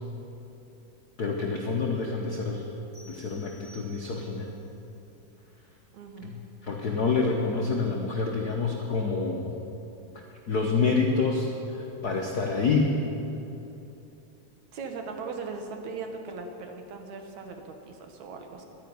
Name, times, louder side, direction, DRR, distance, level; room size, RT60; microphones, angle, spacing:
voice 1, 1.2-2.6 3.0-4.5 6.2-9.5 10.5-13.0, left 4 dB, 80° left, 0 dB, 0.8 m, -27 dB
sound 1, 2.9-4.5, right 1 dB, 45° right, 5.1 m, -54 dB
voice 2, 5.9-6.3 14.7-18.7, right 4 dB, 75° right, 4 dB, 2.6 m, -39 dB
11.5 x 10.0 x 9.5 m, 2.9 s
omnidirectional pair, 3.4 m